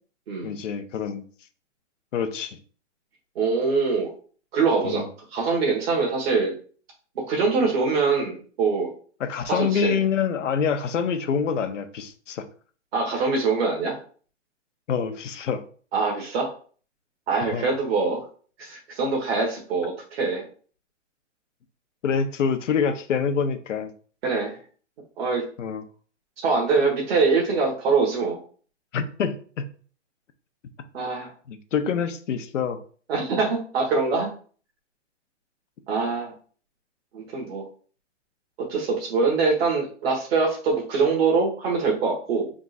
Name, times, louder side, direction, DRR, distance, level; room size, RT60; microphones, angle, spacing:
voice 1, 0.4-1.2 2.1-2.6 4.8-5.1 9.2-12.4 14.9-15.6 17.4-17.7 22.0-23.9 25.6-25.8 28.9-29.6 31.5-32.8, left 6 dB, 80° left, 0.8 m, -26 dB
voice 2, 3.3-4.1 4.5-5.0 5.3-6.5 7.3-8.9 9.5-10.0 12.9-13.9 15.9-16.5 17.3-18.2 18.6-20.4 24.2-24.6 25.2-25.4 26.4-28.4 30.9-31.3 33.1-34.3 35.9-36.3 37.1-37.6 38.7-42.5, right 4 dB, 55° right, 1.3 m, -23 dB
3.6 x 2.4 x 4.1 m
hypercardioid pair, 150°, 37 cm